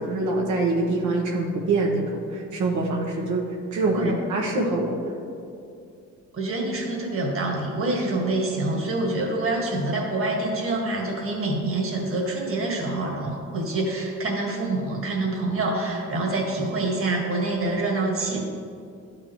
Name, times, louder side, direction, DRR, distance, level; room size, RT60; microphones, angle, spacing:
voice 1, 0.0-3.4 3.7-5.0, right 2 dB, 70° right, -2 dB, 1.1 m, -24 dB
voice 2, 6.3-18.4, right 2 dB, 45° right, 0 dB, 1.7 m, -26 dB
12.0 x 4.9 x 3.0 m, 2.4 s
cardioid pair, 90°, 30 cm